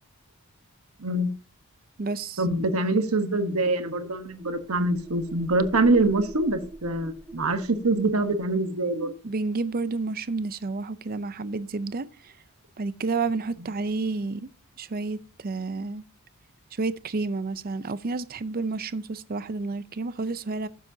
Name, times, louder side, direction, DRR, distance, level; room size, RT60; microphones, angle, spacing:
voice 1, 1.0-1.3 2.4-9.1, right 2 dB, 75° right, 1.2 m, -24 dB
voice 2, 2.0-2.4 9.2-12.3 12.8-14.5 14.8-16.0 16.7-20.7, right 3 dB, 40° right, 0.5 m, -30 dB
sound 1, 4.0-8.6, right 2 dB, 5° right, 1.9 m, -42 dB
15.5 x 7.3 x 2.7 m
head